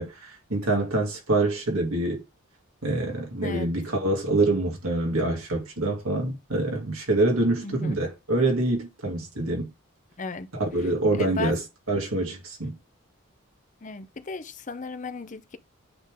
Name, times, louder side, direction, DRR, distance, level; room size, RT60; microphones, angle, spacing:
voice 1, 0.0-2.2 2.8-9.7 10.5-12.8, right 2 dB, 85° right, 2.6 m, -26 dB
voice 2, 7.6-8.0 10.2-10.5 11.1-11.5 13.8-15.6, left 4 dB, 35° left, 0.6 m, -35 dB
8.8 x 3.7 x 3.6 m
head